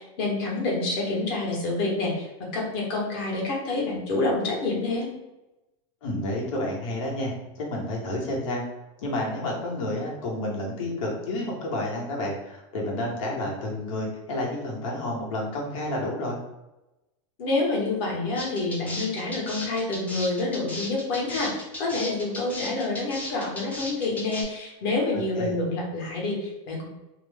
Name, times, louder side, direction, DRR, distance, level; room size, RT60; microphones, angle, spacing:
voice 1, 0.0-5.1 17.4-26.9, left 2 dB, 45° left, -3 dB, 1.1 m, -28 dB
voice 2, 6.0-8.6 9.0-16.4 25.4-25.5, left 1 dB, 85° left, -2 dB, 1.2 m, -30 dB
sound 1, 18.4-24.4, left 1 dB, 10° left, 0.5 m, -35 dB
2.8 x 2.1 x 3.4 m, 0.99 s
supercardioid pair, 165°, 17 cm